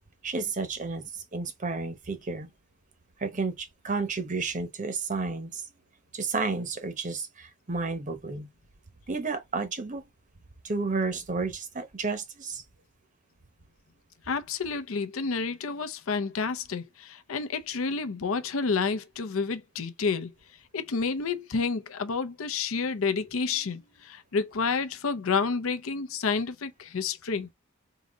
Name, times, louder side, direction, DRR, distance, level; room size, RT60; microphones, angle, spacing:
voice 1, 0.2-2.5 3.2-5.6 6.1-8.5 9.1-10.1 10.6-12.6, right 4 dB, 35° right, 0.7 m, -31 dB
voice 2, 14.3-20.3 20.7-27.5, left 5 dB, 70° left, 0.6 m, -29 dB
3.8 x 2.7 x 4.0 m
head